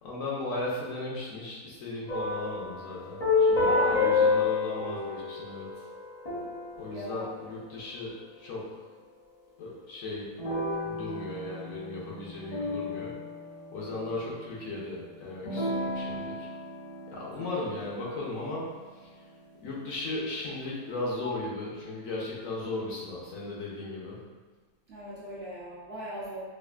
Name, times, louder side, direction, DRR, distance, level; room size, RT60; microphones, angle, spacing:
voice 1, 0.0-5.7 6.8-8.7 9.6-10.3 10.9-13.1 13.7-16.5 17.1-18.7 19.6-24.2, left 2 dB, 65° left, -5 dB, 1.1 m, -36 dB
sound 1, 2.1-8.0 10.4-14.2 15.4-18.1, left 4 dB, 45° left, 0.5 m, -30 dB
voice 2, 3.5-4.4 6.9-7.3 17.4-17.7 24.9-26.4, right 1 dB, 55° right, -8 dB, 0.8 m, -38 dB
4.7 x 2.5 x 2.3 m, 1.4 s
omnidirectional pair, 1.6 m